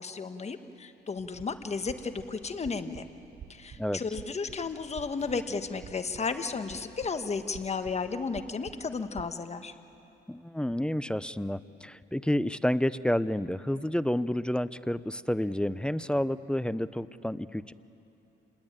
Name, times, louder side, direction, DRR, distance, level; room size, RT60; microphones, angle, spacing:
voice 1, 0.0-3.1 3.5-9.7, left 4 dB, 35° left, 8 dB, 1.4 m, -34 dB
sound 1, 1.2-9.3, right 8 dB, 45° right, 0.8 m, -51 dB
sound 2, 5.2-9.8, right 2 dB, 85° right, 4.6 m, -63 dB
voice 2, 10.3-17.7, left 1 dB, 5° left, 16 dB, 0.6 m, -30 dB
28.0 x 20.5 x 9.0 m, 2.8 s
cardioid pair, 90°, 20 cm